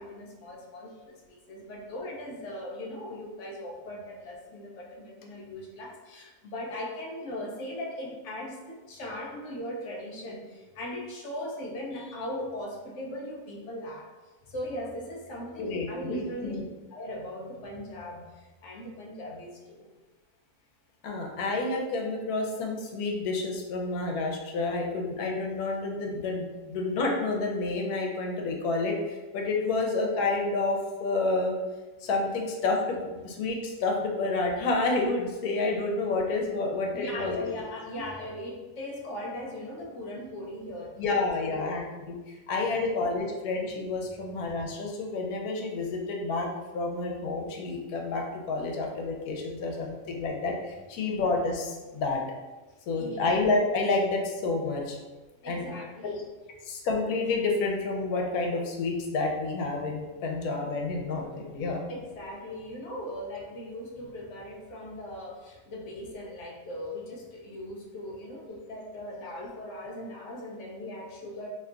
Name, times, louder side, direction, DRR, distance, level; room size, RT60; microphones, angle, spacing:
voice 1, 0.0-14.1 14.5-16.5 16.9-19.9 36.9-41.0 41.4-41.8 42.7-42.9 53.0-53.2 55.4-56.2 61.9-71.5, left 1 dB, 65° left, -1 dB, 0.8 m, -39 dB
voice 2, 15.6-16.6 21.0-31.6 32.0-37.4 41.0-46.5 46.7-52.2 52.9-55.0 55.5-55.7 56.0-56.1 56.6-61.8, left 3 dB, 85° left, 1 dB, 1.1 m, -29 dB
2.8 x 2.2 x 3.7 m, 1.2 s
omnidirectional pair, 1.6 m